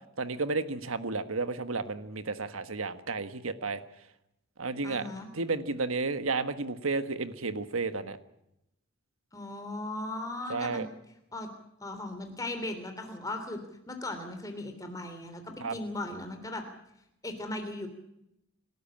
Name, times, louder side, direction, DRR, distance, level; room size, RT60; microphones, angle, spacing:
voice 1, 0.2-3.8 4.6-5.0 5.3-8.2 10.5-10.9 15.6-15.8, right 3 dB, 85° right, 11 dB, 1.5 m, -32 dB
voice 2, 4.8-5.3 9.3-10.9 11.3-11.5 11.8-13.6 13.9-16.6 17.2-17.9, left 2 dB, 15° left, 6 dB, 3.3 m, -37 dB
28.5 x 13.0 x 8.8 m, 0.83 s
head